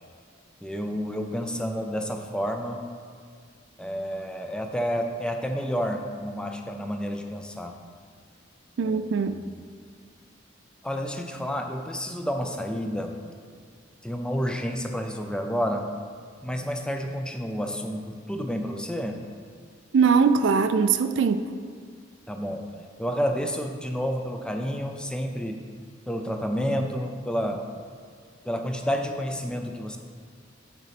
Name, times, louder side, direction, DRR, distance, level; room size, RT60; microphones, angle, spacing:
voice 1, 0.6-2.8 3.8-7.7 8.8-9.3 10.8-13.1 14.0-15.8 16.4-19.2 22.3-22.6 23.0-25.6 26.1-27.6 28.5-30.0, equal, 5° left, 4 dB, 0.5 m, -30 dB
voice 2, 8.8-9.3 19.9-21.4, right 5 dB, 65° right, 10 dB, 0.4 m, -21 dB
8.2 x 3.9 x 5.9 m, 2.1 s
head